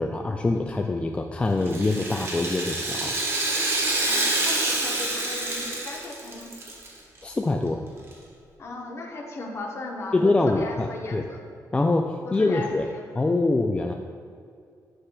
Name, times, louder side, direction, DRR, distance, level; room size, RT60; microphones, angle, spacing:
voice 1, 0.0-3.2 7.2-7.8 10.1-11.3 11.7-12.9 13.1-13.9, left 2 dB, 15° left, 3 dB, 0.3 m, -24 dB
Rattle (instrument), 1.6-6.9 7.2-7.3 8.1-8.2, right 2 dB, 40° right, 1.4 m, -27 dB
voice 2, 4.1-6.5 8.6-11.4 12.2-13.1, left 2 dB, 45° left, 1 dB, 1.0 m, -37 dB
10.0 x 6.3 x 2.3 m, 2.3 s
wide cardioid pair, 135°, 7 cm